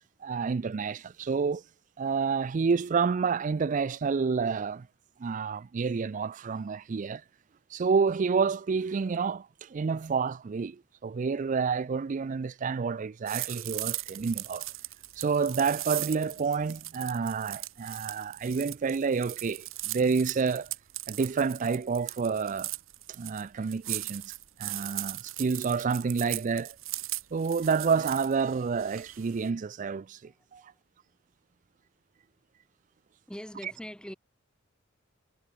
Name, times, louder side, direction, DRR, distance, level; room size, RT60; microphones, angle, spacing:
voice 1, 0.2-1.6 2.0-4.9 5.2-7.2 7.7-14.7 15.2-20.7 21.1-22.7 23.1-24.3 24.6-26.8 27.3-30.6, right 5 dB, 40° right, 0.4 m, -29 dB
sound 1, 13.3-29.5, right 17 dB, 90° right, 1.8 m, -38 dB
voice 2, 30.2-30.6 33.3-34.1, equal, 5° left, 4.1 m, -43 dB
head